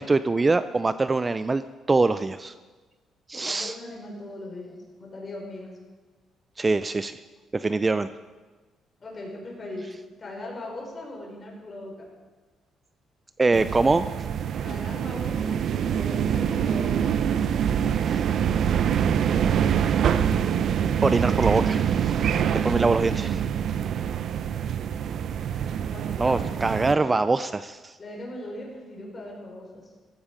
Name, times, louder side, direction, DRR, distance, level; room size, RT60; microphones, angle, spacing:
voice 1, 0.0-1.6 1.9-2.5 3.3-3.8 6.6-7.2 7.5-8.1 13.4-14.1 18.0-18.2 21.0-22.2 22.5-23.4 26.2-28.0, right 3 dB, 20° right, 13 dB, 0.4 m, -23 dB
voice 2, 3.4-5.7 9.0-9.9 10.2-12.1 14.6-15.6 15.9-17.1 25.8-27.0 28.0-29.9, left 1 dB, 30° left, -2 dB, 5.4 m, -39 dB
sound 1, 13.5-26.9, right 8 dB, 60° right, 0.6 m, -25 dB
15.5 x 14.5 x 5.0 m, 1.3 s
cardioid pair, 110°, 0 cm